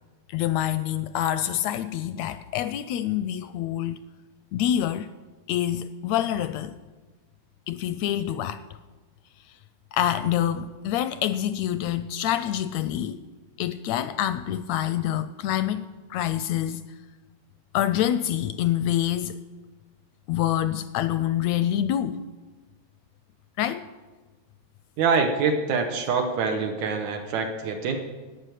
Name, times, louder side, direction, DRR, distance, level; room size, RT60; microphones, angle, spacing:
voice 1, 0.3-4.0 4.5-5.1 5.5-6.8 7.7-8.6 9.9-13.2 13.6-16.8 17.7-19.4 20.3-22.2 23.6-23.9, left 11 dB, 80° left, 13 dB, 1.6 m, -26 dB
voice 2, 25.0-28.0, right 5 dB, 70° right, 4 dB, 2.4 m, -25 dB
11.5 x 8.7 x 9.2 m, 1.3 s
omnidirectional pair, 3.4 m